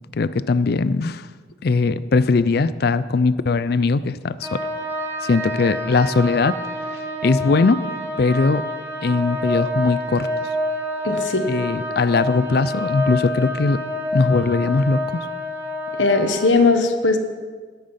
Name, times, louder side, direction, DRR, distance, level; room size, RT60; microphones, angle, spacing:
voice 1, 0.1-1.2 1.6-4.6 5.2-6.6 7.2-7.8 8.2-8.6 9.0-10.3 11.5-13.8 14.1-15.0, left 4 dB, 55° left, 15 dB, 0.4 m, -20 dB
sound 1, 4.4-16.5, left 1 dB, 15° right, 1.3 m, -28 dB
voice 2, 11.0-11.5 16.0-17.2, left 3 dB, 80° left, 7 dB, 1.2 m, -18 dB
13.0 x 10.0 x 5.6 m, 1.5 s
head